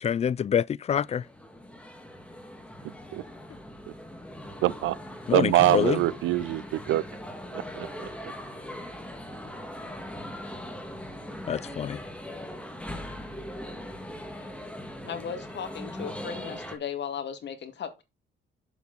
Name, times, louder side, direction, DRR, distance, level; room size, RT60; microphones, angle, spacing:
voice 1, 0.0-1.2 5.3-6.0 11.5-12.0, left 8 dB, 35° left, 0.4 m, -26 dB
sound 1, 0.9-16.8, left 1 dB, 5° left, 2.1 m, -40 dB
voice 2, 4.6-5.0 5.3-7.0 7.5-7.9, right 15 dB, 85° right, 0.6 m, -24 dB
voice 3, 15.0-18.0, left 7 dB, 60° left, 2.0 m, -36 dB
7.2 x 7.0 x 4.0 m
cardioid pair, 90°, 20 cm